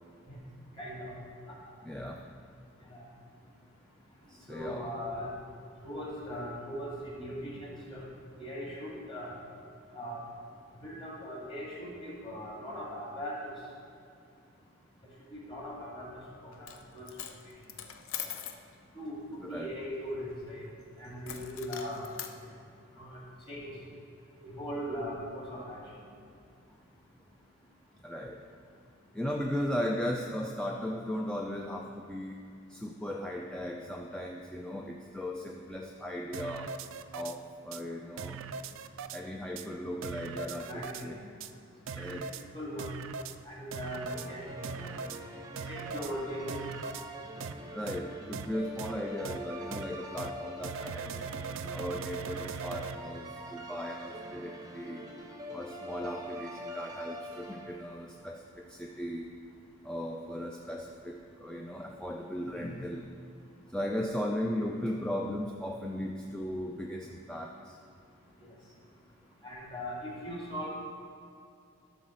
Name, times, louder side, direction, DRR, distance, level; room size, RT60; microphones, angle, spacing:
voice 1, 0.8-1.2 2.9-3.0 4.5-5.3 5.8-8.0 8.4-9.3 9.9-10.2 10.8-13.5 15.3-16.5 16.9-17.1 18.9-19.2 19.5-20.6 21.0-22.1 23.0-23.2 23.5-23.7 24.4-25.8 40.6-41.2 41.9-42.1 42.5-42.9 43.5-44.9 45.7-46.7 69.4-70.7, equal, 25° left, -5 dB, 2.0 m, -39 dB
voice 2, 1.8-2.2 4.3-4.9 19.4-19.8 28.0-28.4 29.1-32.4 32.7-36.7 37.1-38.4 39.1-41.2 41.9-42.3 47.7-51.1 51.7-55.0 55.5-59.3 59.8-63.0 63.7-67.7, equal, 5° left, 0 dB, 0.3 m, -37 dB
Coin (dropping), 16.5-16.8 17.1-18.6 21.2-22.3, left 9 dB, 70° left, 0.6 m, -41 dB
sound 1, 36.3-37.3 37.7-37.8 38.2-39.2 39.6-39.7 40.0-41.0 41.4-41.5 41.9-42.4 42.8-43.3 43.7-44.3 44.6-45.2 45.6-46.1 46.5-47.0 47.4-47.5 47.9-48.0 48.3-48.5 48.8-48.9 49.2-49.4 49.7-49.8 50.2-50.3 50.6-52.9, right 6 dB, 65° right, 0.4 m, -40 dB
sound 2, 43.8-58.1, equal, 15° right, 0.7 m, -44 dB
11.5 x 4.0 x 6.3 m, 2.5 s
head